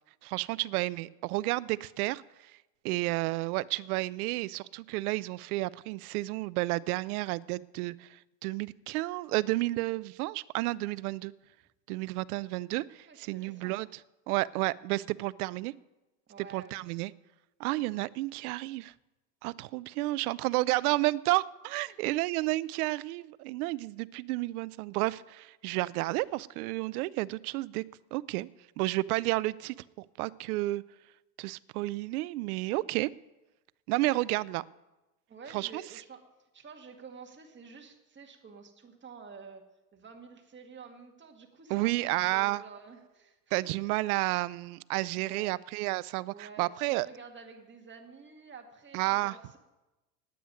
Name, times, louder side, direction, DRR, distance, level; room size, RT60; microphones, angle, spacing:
voice 1, 0.2-2.5 2.8-11.3 11.9-14.0 14.3-15.7 16.5-17.1 17.6-18.9 19.4-27.8 28.1-28.5 28.8-30.8 31.4-33.1 33.9-34.6 35.5-35.8 41.7-42.6 43.5-47.1 48.9-49.4, right 20 dB, 65° right, 21 dB, 0.6 m, -31 dB
voice 2, 13.1-13.8 16.3-17.0 20.7-20.9 21.8-22.2 35.3-36.2 36.5-39.6 39.9-43.8 45.1-45.6 46.3-49.6, right 5 dB, 25° right, 3 dB, 2.0 m, -50 dB
9.4 x 9.3 x 9.4 m, 1.0 s
hypercardioid pair, 100°, 48 cm